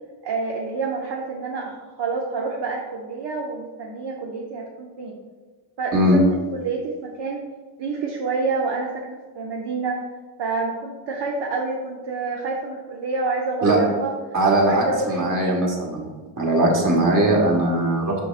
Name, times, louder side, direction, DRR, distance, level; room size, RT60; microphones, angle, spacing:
voice 1, 0.2-5.2 5.8-6.0 6.3-7.4 7.8-10.0 10.4-14.1 14.6-15.6, right 4 dB, 60° right, -1 dB, 0.8 m, -28 dB
voice 2, 14.3-16.1 16.4-18.2, right 1 dB, 45° right, -2 dB, 1.6 m, -19 dB
6.3 x 6.1 x 2.5 m, 1.4 s
cardioid pair, 115°, 46 cm